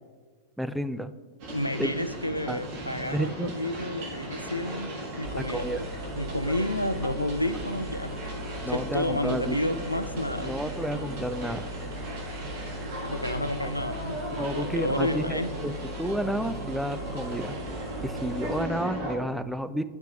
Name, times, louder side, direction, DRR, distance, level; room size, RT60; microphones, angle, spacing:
voice 1, 0.6-1.1 1.8-1.9 2.5-2.6 3.0-3.5 5.5-5.8 6.5-6.6 7.0-7.2 8.6-9.6 10.4-11.7 13.6-13.7 14.4-15.7 16.0-17.6 18.0-19.8, right 1 dB, ahead, 10 dB, 0.3 m, -31 dB
sound 1, 1.4-19.1, right 1 dB, 50° right, 1.6 m, -37 dB
voice 2, 1.5-5.8 6.2-8.1 8.7-10.5 13.0-14.2 14.5-15.5, left 1 dB, 85° left, 11 dB, 0.3 m, -30 dB
sound 2, 5.2-18.6, right 1 dB, 25° right, 1.2 m, -40 dB
11.5 x 5.6 x 2.4 m, 1.4 s
figure-of-eight pair, 90°, 0 cm